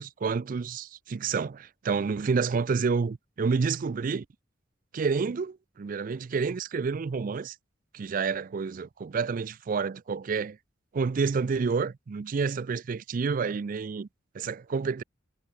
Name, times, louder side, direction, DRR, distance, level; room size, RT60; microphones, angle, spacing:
voice 1, 0.0-4.3 4.9-7.6 7.9-10.6 10.9-14.1 14.3-15.0, right 5 dB, 45° right, 0.4 m, -29 dB
head